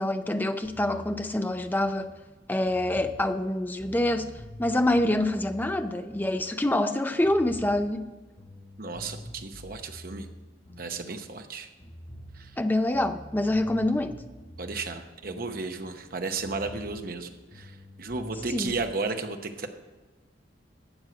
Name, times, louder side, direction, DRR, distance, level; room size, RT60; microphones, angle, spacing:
voice 1, 0.0-2.1 2.5-4.3 4.6-8.1 12.6-14.2 18.5-18.7, left 1 dB, 10° left, 0.5 m, -26 dB
sound 1, 0.6-6.9 7.2-11.5 11.8-16.1 16.4-18.9, equal, 25° left, 1.2 m, -46 dB
voice 2, 8.8-10.3 10.8-11.7 12.4-12.5 14.6-17.3 17.5-17.7 18.0-19.7, right 3 dB, 50° right, 0.9 m, -33 dB
12.0 x 7.9 x 5.0 m
head